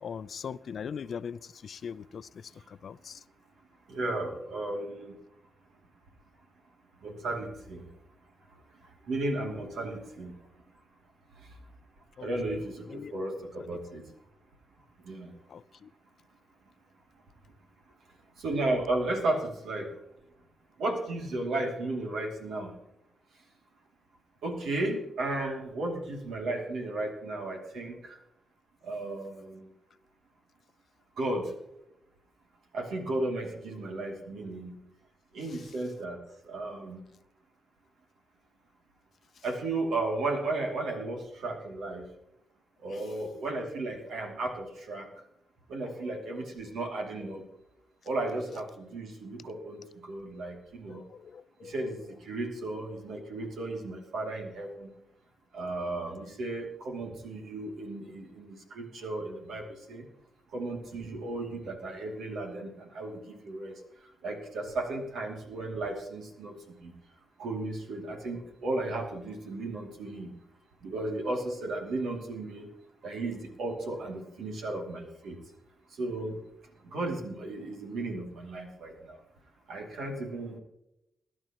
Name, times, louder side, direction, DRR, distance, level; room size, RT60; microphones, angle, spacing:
voice 1, 0.0-3.2 12.2-13.1 13.6-13.7 15.5-15.9 35.4-35.7 39.4-39.5 42.9-43.1 45.8-46.3 47.3-47.4 48.2-48.6 50.9-51.7 52.1-52.2, left 7 dB, 65° left, 0.5 m, -42 dB
voice 2, 3.9-5.1 7.0-7.9 9.1-10.3 12.2-14.0 15.1-15.3 18.4-19.9 20.8-22.7 24.4-28.2 28.8-29.7 31.2-31.5 32.7-34.7 35.3-36.2 36.5-37.0 39.4-42.1 42.8-45.1 45.7-47.4 48.1-51.0 51.6-54.9 55.5-60.0 60.5-63.7 64.2-66.6 66.8-66.9 67.4-70.3 70.8-72.7 73.0-75.4 76.0-76.3 76.9-78.9 79.7-80.6, right 2 dB, 85° right, 2.6 m, -34 dB
22.5 x 11.0 x 3.0 m
cardioid pair, 70°, 0 cm